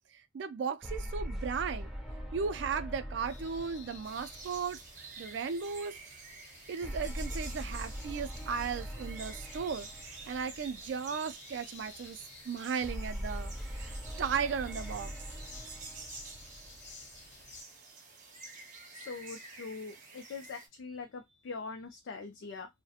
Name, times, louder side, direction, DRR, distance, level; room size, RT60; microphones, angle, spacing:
voice 1, 0.3-1.9 2.3-4.8 5.2-6.0 6.7-12.2 12.4-15.1, right 6 dB, 70° right, 0.3 m, -36 dB
sound 1, 0.8-5.4 6.8-11.2 12.8-17.4, equal, ahead, 0.4 m, -42 dB
sound 2, 3.2-17.6, left 4 dB, 60° left, 0.8 m, -55 dB
sound 3, 4.0-20.7, right 4 dB, 40° right, 0.7 m, -50 dB
voice 2, 18.9-22.7, left 4 dB, 75° left, 0.4 m, -43 dB
2.3 x 2.1 x 2.7 m
head